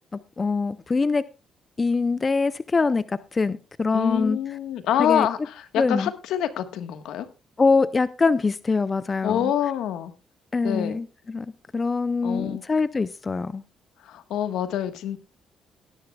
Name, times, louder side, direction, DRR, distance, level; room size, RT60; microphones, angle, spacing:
voice 1, 0.1-1.2 1.8-4.4 5.0-5.3 5.8-6.1 7.6-9.5 10.5-13.6, left 4 dB, 30° left, 15 dB, 0.6 m, -24 dB
voice 2, 3.9-7.3 9.2-10.1 10.6-11.0 12.2-12.6 14.0-15.2, left 10 dB, 85° left, 9 dB, 1.4 m, -26 dB
19.0 x 10.5 x 2.3 m, 0.30 s
cardioid pair, 90°, 0 cm